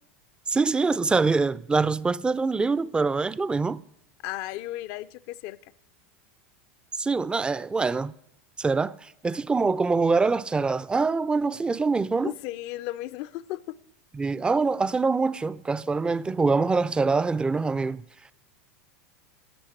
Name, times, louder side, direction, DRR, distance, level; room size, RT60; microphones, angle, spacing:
voice 1, 0.5-3.8 7.0-8.1 8.6-12.3 14.1-18.0, right 4 dB, 15° right, 0.4 m, -24 dB
voice 2, 4.2-5.6 12.2-13.8, left 16 dB, 60° left, 0.5 m, -35 dB
12.0 x 7.4 x 8.8 m
hypercardioid pair, 105°, 7 cm